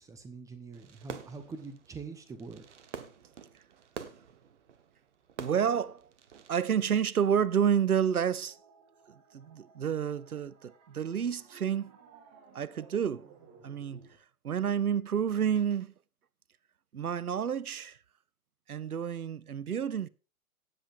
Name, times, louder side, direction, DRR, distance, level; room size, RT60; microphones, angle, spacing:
voice 1, 0.0-2.6, right 4 dB, 10° right, 0.8 m, -44 dB
Fireworks, 0.7-6.7, right 7 dB, 55° right, 1.2 m, -47 dB
voice 2, 5.4-6.1 6.5-8.6 9.1-11.9 12.5-13.3 13.6-14.1 14.4-15.9 16.9-18.0 18.7-20.1, right 8 dB, 85° right, 0.6 m, -29 dB
sound 1, 7.9-14.2, right 5 dB, 35° right, 1.9 m, -59 dB
18.0 x 7.6 x 2.5 m
figure-of-eight pair, 110°, 43 cm